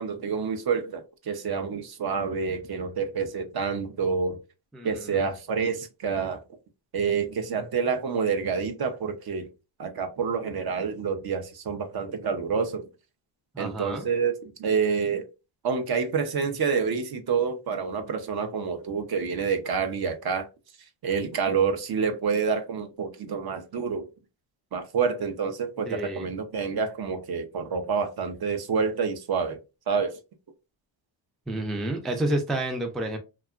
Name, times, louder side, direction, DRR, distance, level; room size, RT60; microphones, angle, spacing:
voice 1, 0.0-4.4 4.8-6.4 6.9-9.5 9.8-12.9 13.6-15.3 15.6-20.5 21.0-24.0 24.7-29.6 29.9-30.2, right 5 dB, 50° right, 0.6 m, -28 dB
voice 2, 4.7-5.3 13.5-14.1 25.8-26.3 31.5-33.2, right 1 dB, ahead, 0.3 m, -30 dB
2.8 x 2.3 x 2.3 m
cardioid pair, 95°, 49 cm